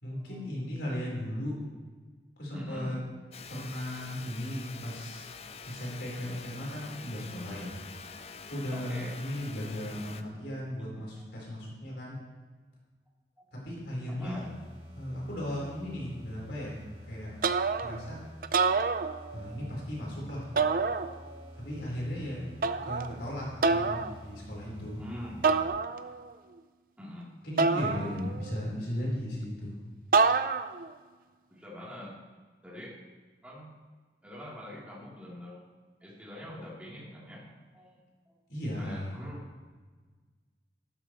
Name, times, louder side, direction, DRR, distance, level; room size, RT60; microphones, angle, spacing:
voice 1, 0.0-1.6 2.4-3.0 3.5-5.2 5.6-7.7 8.5-12.2 13.6-14.4 15.0-16.8 17.1-17.3 17.8-18.2 19.3-20.5 21.6-22.4 22.8-25.0 27.4-29.8 38.5-39.2, left 1 dB, 75° left, -4 dB, 4.2 m, -36 dB
voice 2, 2.5-2.9 8.7-9.1 11.2-11.3 13.4-13.5 14.1-14.5 25.0-25.4 27.0-27.3 31.5-32.2 32.6-33.0 33.4-33.7 34.2-35.6 36.0-37.4 37.7-38.0 38.3-38.4 38.8-39.4, equal, 10° right, -7 dB, 3.3 m, -44 dB
sound 1, 3.3-10.2, left 5 dB, 35° left, 0.5 m, -46 dB
sound 2, 14.2-25.7, equal, 35° right, 3.1 m, -49 dB
sound 3, 17.4-18.1 18.4-19.6 20.6-21.5 22.6-23.1 23.6-24.1 25.4-26.3 27.6-28.6 30.1-30.9, right 4 dB, 50° right, 0.5 m, -27 dB
13.5 x 12.5 x 3.1 m, 1.4 s
head